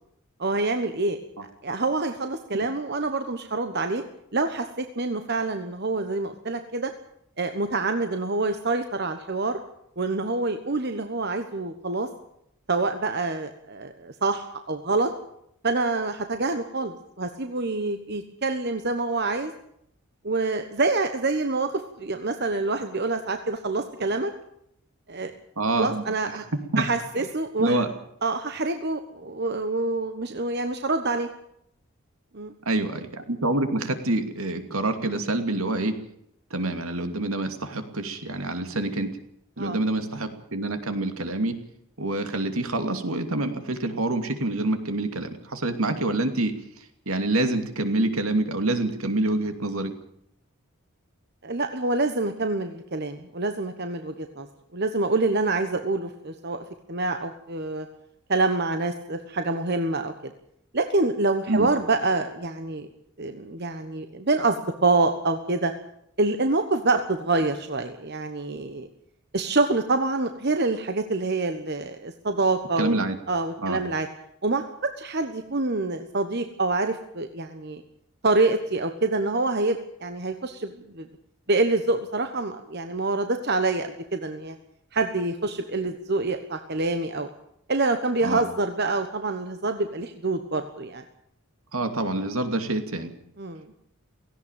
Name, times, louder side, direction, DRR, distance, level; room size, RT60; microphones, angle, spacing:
voice 1, 0.4-1.2 1.6-4.0 4.3-6.9 7.4-9.6 10.0-12.1 12.7-15.1 15.6-19.5 20.2-24.3 25.1-25.3 25.8-26.4 26.8-27.8 28.2-31.3 32.3-32.5 39.6-39.8 51.4-54.5 54.7-57.9 58.3-60.3 60.7-62.9 63.2-65.7 66.2-68.9 69.3-73.0 73.3-74.1 74.4-77.8 78.2-81.1 81.5-84.6 84.9-87.3 87.7-91.0 93.4-93.6, right 3 dB, 45° right, 7 dB, 1.2 m, -26 dB
voice 2, 25.6-26.1 26.7-26.9 27.6-27.9 32.7-36.0 36.5-39.2 39.6-41.6 42.0-49.9 61.5-61.7 72.8-73.2 73.6-73.8 88.2-88.4 91.7-93.1, right 2 dB, 70° right, 7 dB, 2.6 m, -26 dB
17.5 x 16.0 x 9.1 m, 0.74 s
head